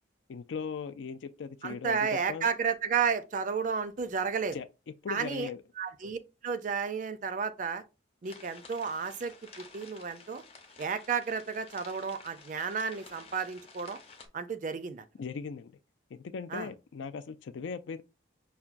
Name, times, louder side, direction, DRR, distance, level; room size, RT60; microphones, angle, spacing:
voice 1, 0.3-2.5 4.5-4.7 5.0-5.6 15.2-15.8 16.1-18.0, left 5 dB, 75° left, 0.4 m, -38 dB
voice 2, 1.6-4.6 5.1-5.5 5.8-6.2 6.4-7.8 8.2-10.4 10.8-14.0 14.3-15.0 16.5-16.7, right 6 dB, 40° right, 0.4 m, -32 dB
sound 1, 8.2-14.3, left 4 dB, 30° left, 0.6 m, -52 dB
5.6 x 2.2 x 2.4 m
head